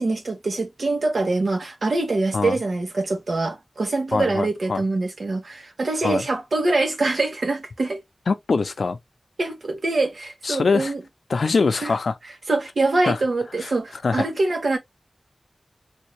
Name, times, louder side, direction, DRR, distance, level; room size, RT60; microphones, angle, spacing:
voice 1, 0.0-8.0 9.4-11.0 11.8-11.9 12.5-14.8, right 2 dB, 70° right, 1.3 m, -24 dB
voice 2, 4.1-4.8 6.0-6.2 8.3-9.0 10.4-10.9 11.3-12.1 13.1-13.2 14.0-14.2, left 4 dB, 85° left, 0.5 m, -22 dB
3.6 x 2.7 x 3.0 m
wide cardioid pair, 85°, 0 cm